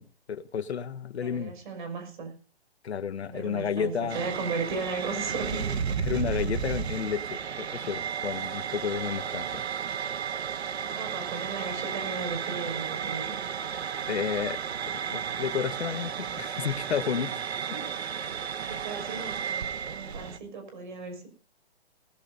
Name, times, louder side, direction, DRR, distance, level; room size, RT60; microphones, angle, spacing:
voice 1, 0.0-1.5 2.8-4.3 6.0-9.6 14.1-14.6 14.9-17.4, left 7 dB, 85° left, 1.3 m, -32 dB
voice 2, 1.2-2.3 3.3-6.0 10.7-13.4 17.7-17.9 18.7-21.3, right 4 dB, 50° right, 5.8 m, -36 dB
sound 1, 4.1-20.4, right 7 dB, 85° right, 1.3 m, -33 dB
19.0 x 15.5 x 2.7 m
hypercardioid pair, 165°, 31 cm